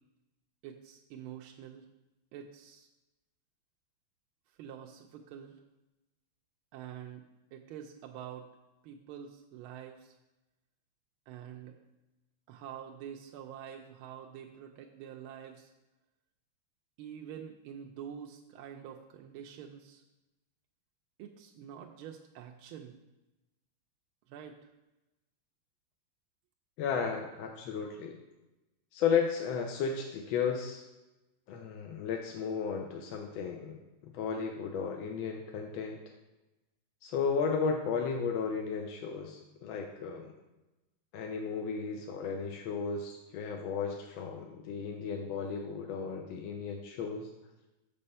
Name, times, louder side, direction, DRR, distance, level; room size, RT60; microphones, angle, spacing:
voice 1, 0.6-1.9 2.3-2.9 4.6-5.6 6.7-8.5 8.8-10.2 11.3-11.8 12.5-15.7 17.0-20.0 21.2-23.0 24.3-24.7, right 9 dB, 80° right, 2 dB, 1.4 m, -46 dB
voice 2, 26.8-28.2 28.9-30.8 31.5-36.0 37.0-40.3 41.1-47.3, left 6 dB, 75° left, 2 dB, 1.4 m, -34 dB
6.8 x 5.3 x 5.4 m, 1.0 s
omnidirectional pair, 2.3 m